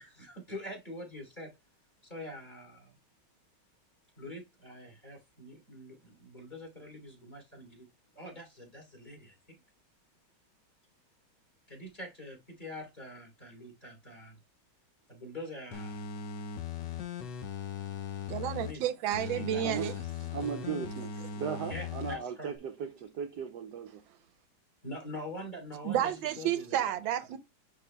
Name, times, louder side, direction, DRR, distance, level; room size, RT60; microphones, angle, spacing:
voice 1, 0.0-1.5 2.1-2.9 4.2-7.8 8.1-9.6 11.7-14.3 15.1-16.0 18.6-18.9 19.3-20.1 21.6-22.5 24.8-27.0, left 1 dB, 25° left, 3.0 m, -45 dB
sound 1, 15.7-18.7 19.1-22.2 22.6-22.7, left 8 dB, 70° left, 1.5 m, -39 dB
voice 2, 18.3-19.9 20.6-20.9 25.8-27.4, right 11 dB, 90° right, 1.5 m, -31 dB
voice 3, 20.3-21.1 21.4-24.0, right 7 dB, 70° right, 1.1 m, -37 dB
10.0 x 4.2 x 2.2 m
omnidirectional pair, 2.1 m